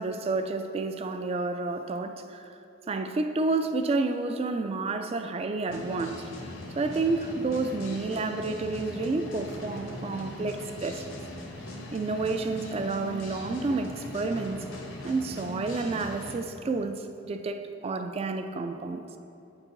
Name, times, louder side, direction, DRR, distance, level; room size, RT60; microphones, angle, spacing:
voice 1, 0.0-2.5 2.9-6.2 6.7-11.1 11.9-14.7 15.0-19.0, right 3 dB, 30° right, 7 dB, 0.3 m, -30 dB
sound 1, 5.7-16.4, left 1 dB, 85° left, 1.0 m, -40 dB
8.7 x 3.8 x 4.6 m, 2.7 s
head